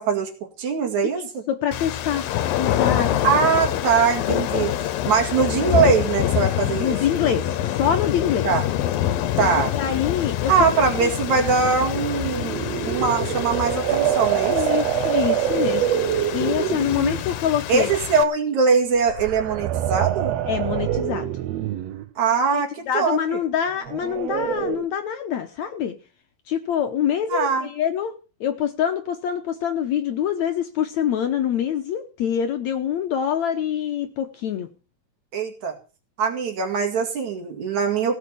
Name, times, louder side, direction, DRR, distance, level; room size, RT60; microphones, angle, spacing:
voice 1, 0.0-1.4 3.2-4.7 5.1-7.0 8.4-8.7 9.4-9.7 10.5-14.6 17.7-20.4 22.2-23.4 27.3-27.7 35.3-35.7 36.2-38.2, right 5 dB, 60° right, 4 dB, 3.3 m, -22 dB
voice 2, 1.2-2.3 2.5-3.3 6.8-8.5 9.6-10.7 11.0-11.1 14.4-15.9 16.3-17.9 20.5-21.3 22.5-26.0 26.5-28.1 28.4-34.7, left 9 dB, 70° left, 7 dB, 1.9 m, -25 dB
sound 1, 1.7-18.2, left 11 dB, 90° left, 2.7 m, -26 dB
sound 2, 12.1-17.3 19.0-22.1 23.8-24.9, right 11 dB, 75° right, 1.5 m, -25 dB
16.5 x 7.0 x 6.9 m, 0.35 s
omnidirectional pair, 4.0 m